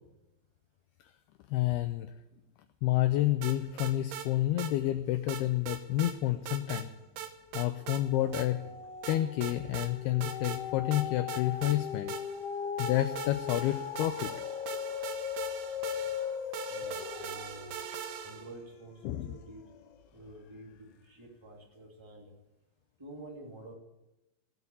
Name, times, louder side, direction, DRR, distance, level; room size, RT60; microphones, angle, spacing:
voice 1, 1.5-2.1 2.8-6.9 7.5-8.6 9.1-12.1 12.8-14.4 15.0-15.7 16.2-16.8 19.0-19.3, left 14 dB, 90° left, 9 dB, 2.2 m, -30 dB
sound 1, 3.4-4.3 4.6-4.7 5.3-6.2 6.5-6.9 7.2-8.0 8.3-8.5 9.0-9.9 10.2-10.6 10.9-12.5 12.8-18.6, right 9 dB, 70° right, 2.8 m, -41 dB
sound 2, 6.8-7.2 7.6-20.1 20.6-20.7, left 8 dB, 70° left, 2.7 m, -39 dB
voice 2, 16.7-17.7 18.2-19.8 20.1-22.3 23.0-23.7, right 1 dB, 10° right, -1 dB, 1.2 m, -49 dB
18.5 x 8.3 x 7.0 m, 0.98 s
omnidirectional pair, 5.3 m